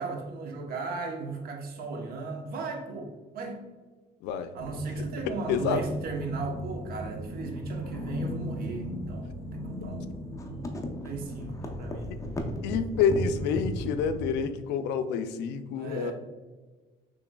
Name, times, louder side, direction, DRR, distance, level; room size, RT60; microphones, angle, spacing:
voice 1, 0.0-3.6 4.5-10.8 11.0-12.2 15.7-16.1, right 3 dB, 60° right, 2 dB, 0.9 m, -36 dB
sound 1, 4.6-14.3, left 1 dB, 20° left, 0.6 m, -36 dB
voice 2, 5.5-5.8 12.6-16.1, left 6 dB, 90° left, 10 dB, 0.4 m, -28 dB
6.2 x 3.1 x 2.3 m, 1.3 s
cardioid pair, 110°, 17 cm